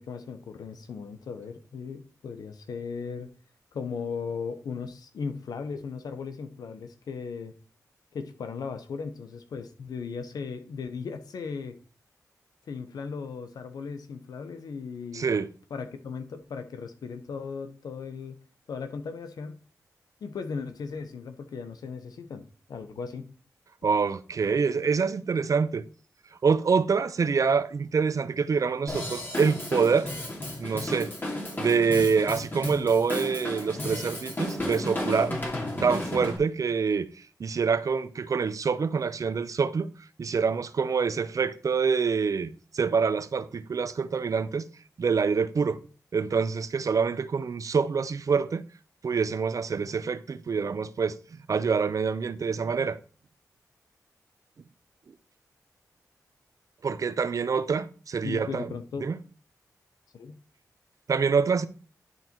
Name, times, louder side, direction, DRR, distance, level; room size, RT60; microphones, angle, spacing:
voice 1, 0.0-3.3 3.7-7.5 8.1-11.8 12.7-15.3 15.7-18.4 18.7-19.6 20.2-22.4 22.7-23.3 58.2-59.1 60.1-60.4, left 5 dB, 90° left, 1.0 m, -37 dB
voice 2, 15.1-15.5 23.8-25.8 26.4-30.1 30.6-31.1 31.6-35.4 35.8-37.1 37.4-44.7 45.0-45.8 46.1-48.6 49.0-51.2 51.5-53.0 56.8-58.7 59.0-59.2 61.1-61.7, right 5 dB, 60° right, 0.6 m, -26 dB
Drum kit / Drum, 28.9-36.4, left 1 dB, 30° left, 2.5 m, -33 dB
11.0 x 4.1 x 4.5 m
cardioid pair, 65°, 6 cm